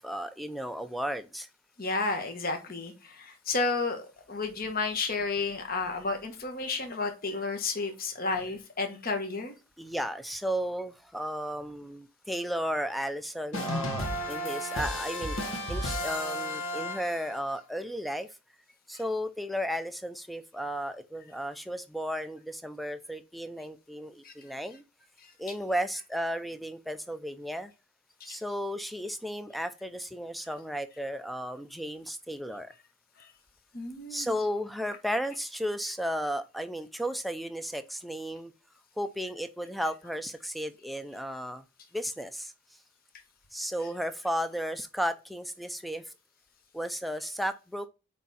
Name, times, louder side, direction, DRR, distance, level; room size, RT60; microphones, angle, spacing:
voice 1, 0.0-1.5 9.8-15.4 15.7-18.3 18.9-24.8 25.4-27.7 28.2-32.7 34.1-38.5 39.0-41.6 41.9-42.5 43.5-46.1 46.7-47.9, equal, ahead, 0.5 m, -34 dB
voice 2, 1.8-9.5 24.2-24.3 33.2-33.3 33.7-34.5 39.8-39.9 43.8-43.9, left 3 dB, 45° left, 1.4 m, -32 dB
sound 1, 13.5-17.4, left 1 dB, 70° left, 1.5 m, -33 dB
8.6 x 3.6 x 4.2 m
head